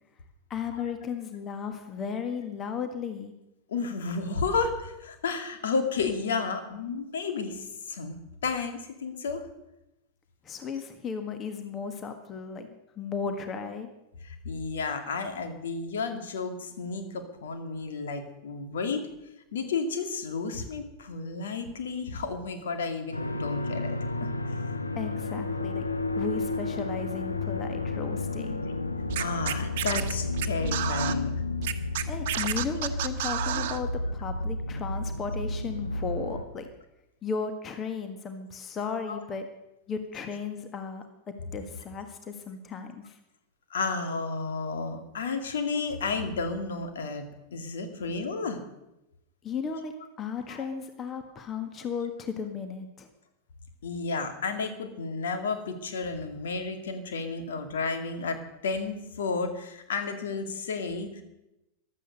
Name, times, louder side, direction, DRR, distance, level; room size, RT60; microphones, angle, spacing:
voice 1, 0.5-3.3 10.4-13.9 24.9-25.8 26.1-28.6 32.1-36.7 37.2-39.5 39.9-43.2 49.4-49.9 50.2-53.1, left 6 dB, 25° left, 7 dB, 1.6 m, -35 dB
voice 2, 3.7-8.1 8.4-9.5 14.2-19.1 19.5-24.6 29.2-31.4 39.1-39.2 43.7-48.6 50.5-50.6 53.8-61.2, left 4 dB, 60° left, 6 dB, 2.2 m, -32 dB
sound 1, 23.1-36.4, left 2 dB, 80° left, 1.0 m, -32 dB
Scratching (performance technique), 29.1-31.1 31.6-33.8, right 12 dB, 55° right, 1.1 m, -30 dB
15.0 x 12.0 x 6.6 m, 0.91 s
figure-of-eight pair, 90°, 0 cm